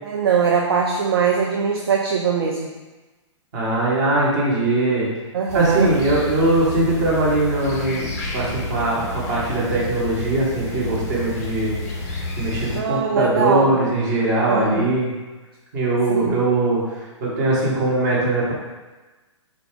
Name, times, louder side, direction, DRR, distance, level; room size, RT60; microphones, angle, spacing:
voice 1, 0.0-2.7 5.3-5.9 12.8-13.8 14.5-14.9 16.1-16.4, right 6 dB, 50° right, 0 dB, 0.4 m, -21 dB
voice 2, 3.5-5.1 5.5-11.8 12.0-15.1 15.7-18.5, right 2 dB, 35° right, -6 dB, 1.1 m, -21 dB
sound 1, 5.5-12.8, left 2 dB, 30° left, 0.4 m, -31 dB
3.6 x 2.3 x 3.6 m, 1.2 s
figure-of-eight pair, 120°, 16 cm